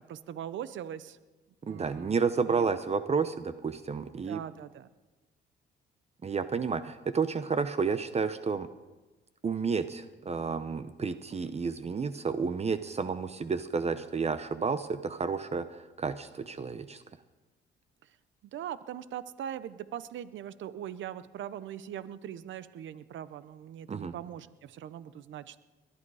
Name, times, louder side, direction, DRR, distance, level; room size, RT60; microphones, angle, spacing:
voice 1, 0.1-1.2 1.6-2.2 2.5-2.7 4.3-4.9 18.5-25.6, right 10 dB, 70° right, 15 dB, 0.8 m, -41 dB
voice 2, 1.7-4.4 6.2-8.7 9.4-17.0 23.9-24.1, right 5 dB, 35° right, 11 dB, 0.8 m, -31 dB
21.0 x 11.5 x 4.9 m, 1.2 s
cardioid pair, 90°, 20 cm